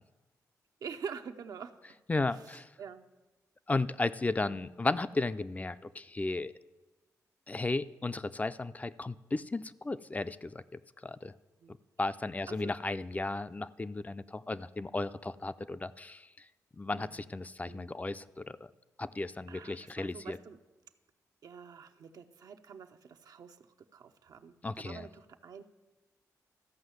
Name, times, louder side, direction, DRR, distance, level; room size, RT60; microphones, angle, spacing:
voice 1, 0.8-1.7 2.3-3.0 4.2-4.6 11.6-11.8 12.5-12.7 16.9-17.3 17.6-17.9 19.5-20.6 21.4-23.6 23.9-25.6, right 6 dB, 75° right, 7 dB, 0.7 m, -46 dB
voice 2, 2.1-2.7 3.7-6.5 7.5-10.6 11.0-11.3 12.0-16.3 16.8-18.7 19.0-20.4 24.6-25.1, left 2 dB, 25° left, 13 dB, 0.4 m, -34 dB
13.5 x 5.5 x 7.9 m, 1.1 s
cardioid pair, 70°, 7 cm